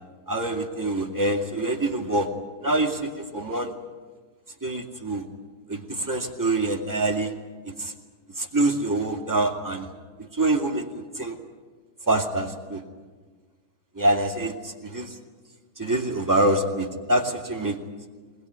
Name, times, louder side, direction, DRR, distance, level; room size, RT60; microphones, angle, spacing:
voice 1, 0.3-2.3 2.6-3.7 4.6-5.2 5.7-7.3 7.6-7.9 8.4-9.9 10.3-11.4 12.1-12.8 13.9-15.2 15.8-17.8, right 2 dB, 10° right, 0 dB, 2.3 m, -25 dB
21.5 x 20.5 x 9.6 m, 1.4 s
omnidirectional pair, 2.2 m